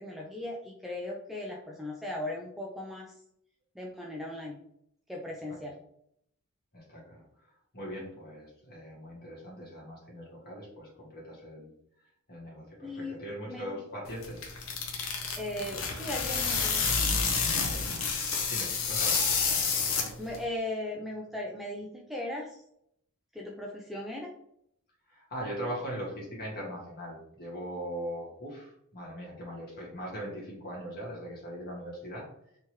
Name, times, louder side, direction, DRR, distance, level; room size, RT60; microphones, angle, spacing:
voice 1, 0.0-3.1 3.8-4.6 5.1-5.7 12.8-13.1 13.5-13.8 15.4-16.8 20.2-22.6 23.3-24.3, left 1 dB, ahead, -2 dB, 0.3 m, -37 dB
voice 2, 6.7-7.2 7.7-11.7 12.3-14.4 17.5-17.8 18.5-19.2 25.1-32.3, equal, 45° left, -4 dB, 1.5 m, -40 dB
sound 1, 14.1-20.4, left 5 dB, 65° left, 0.6 m, -29 dB
3.5 x 2.9 x 3.0 m, 0.72 s
head